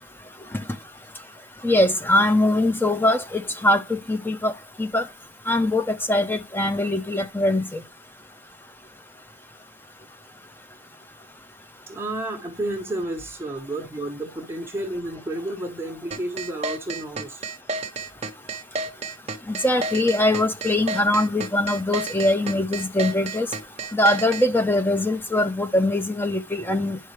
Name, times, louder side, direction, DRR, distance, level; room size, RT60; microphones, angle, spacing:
voice 1, 1.6-4.5 4.8-5.0 5.5-7.8 19.5-23.5 23.9-27.0, left 1 dB, 10° left, 0.5 m, -22 dB
voice 2, 11.9-17.4, right 1 dB, 10° right, 1.3 m, -31 dB
sound 1, 16.1-24.5, right 3 dB, 30° right, 0.9 m, -30 dB
10.5 x 5.6 x 3.2 m
head